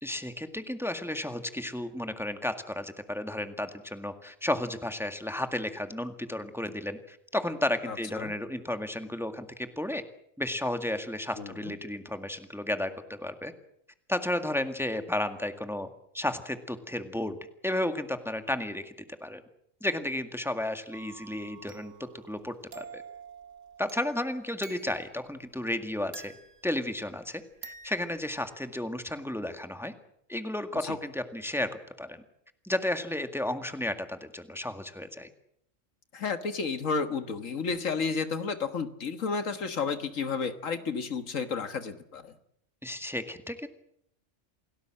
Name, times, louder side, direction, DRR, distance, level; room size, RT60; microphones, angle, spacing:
voice 1, 0.0-10.0 10.4-13.5 14.1-15.9 16.1-17.4 17.6-18.9 19.2-19.4 19.8-21.9 22.3-23.0 23.8-26.3 26.6-29.9 30.3-32.2 32.6-35.3 42.8-43.7, left 1 dB, ahead, 7 dB, 1.8 m, -33 dB
voice 2, 7.9-8.3 11.4-11.7 30.8-31.0 36.1-42.3, left 5 dB, 80° left, 9 dB, 1.9 m, -32 dB
sound 1, 20.9-25.3 26.1-27.2 27.6-28.6, right 5 dB, 70° right, 1.8 m, -49 dB
28.5 x 18.0 x 7.6 m, 0.73 s
omnidirectional pair, 1.3 m